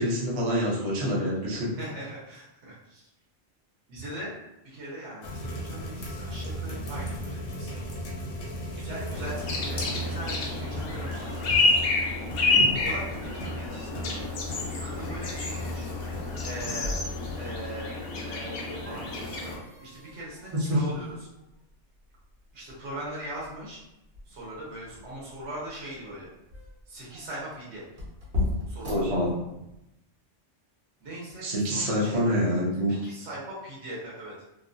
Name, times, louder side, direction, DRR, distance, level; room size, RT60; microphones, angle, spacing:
voice 1, 0.0-1.7 12.5-12.7 28.9-29.3 31.4-33.0, equal, 40° right, -5 dB, 0.5 m, -26 dB
voice 2, 1.8-3.1 3.9-4.3 4.6-7.8 8.8-11.5 12.7-14.3 14.8-16.0 16.4-16.9 17.3-17.9 18.3-21.2 22.5-23.8 24.2-26.3 26.9-27.8 28.7-29.0 31.0-32.4 33.0-34.3, right 1 dB, 70° right, -6 dB, 1.1 m, -40 dB
sound 1, 5.2-16.8, equal, 85° left, 1.0 m, -37 dB
sound 2, 9.1-19.6, left 3 dB, 60° left, 0.7 m, -29 dB
sound 3, 16.7-29.8, left 2 dB, 55° right, 1.0 m, -39 dB
2.8 x 2.2 x 2.5 m, 0.89 s
omnidirectional pair, 1.3 m